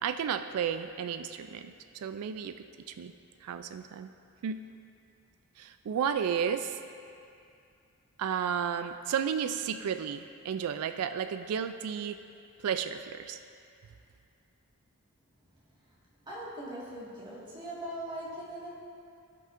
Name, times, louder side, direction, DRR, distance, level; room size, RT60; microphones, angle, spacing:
voice 1, 0.0-2.5 2.9-3.1 3.4-4.1 4.4-4.6 5.6-6.8 8.2-12.2 12.6-13.4, right 7 dB, 75° right, 9 dB, 0.3 m, -32 dB
voice 2, 16.3-18.8, right 1 dB, 20° right, -7 dB, 1.7 m, -40 dB
16.0 x 5.4 x 2.5 m, 2.5 s
head